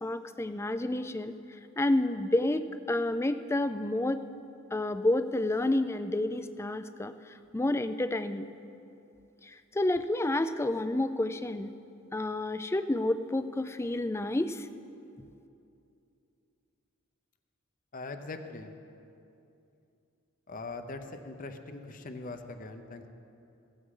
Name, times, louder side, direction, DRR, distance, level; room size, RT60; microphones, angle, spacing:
voice 1, 0.0-1.4 1.8-4.2 4.7-7.1 7.5-8.5 9.4-11.7 12.1-14.7, left 1 dB, 10° left, 11 dB, 0.4 m, -29 dB
voice 2, 17.9-18.7 20.5-23.1, left 3 dB, 40° left, 7 dB, 0.7 m, -41 dB
16.5 x 15.0 x 3.7 m, 2.7 s
head